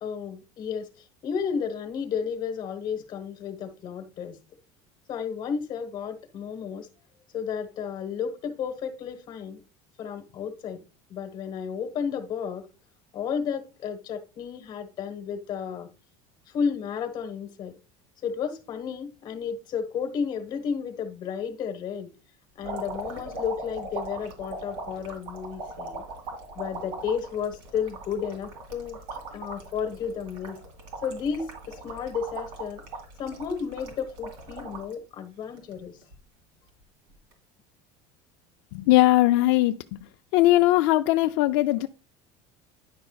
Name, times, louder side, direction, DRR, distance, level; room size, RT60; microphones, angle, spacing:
voice 1, 0.0-4.4 5.1-6.9 7.3-9.6 10.0-10.8 11.1-12.7 13.1-15.9 16.5-17.7 18.2-22.1 22.5-26.0 26.5-29.0 29.3-30.6 31.0-32.8 33.2-36.0, left 7 dB, 35° left, 1.1 m, -32 dB
sound 1, 22.6-34.9 35.4-36.2 37.1-37.3, right 3 dB, 85° right, 2.4 m, -39 dB
voice 2, 38.7-39.8 40.3-41.9, left 16 dB, 65° left, 0.4 m, -20 dB
10.0 x 5.6 x 2.3 m
cardioid pair, 175°, 13 cm